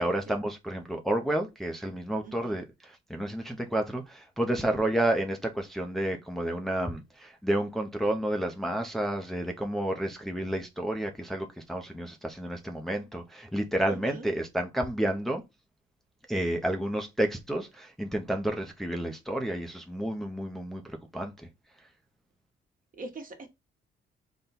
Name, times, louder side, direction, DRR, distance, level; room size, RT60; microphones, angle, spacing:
voice 1, 0.0-15.4 16.3-21.5 21.8-21.9, right 1 dB, ahead, 0.6 m, -30 dB
voice 2, 2.2-2.6 4.6-4.8 13.9-14.3 22.9-23.5, right 3 dB, 45° right, 1.2 m, -43 dB
3.7 x 2.2 x 4.1 m
cardioid pair, 90°, 20 cm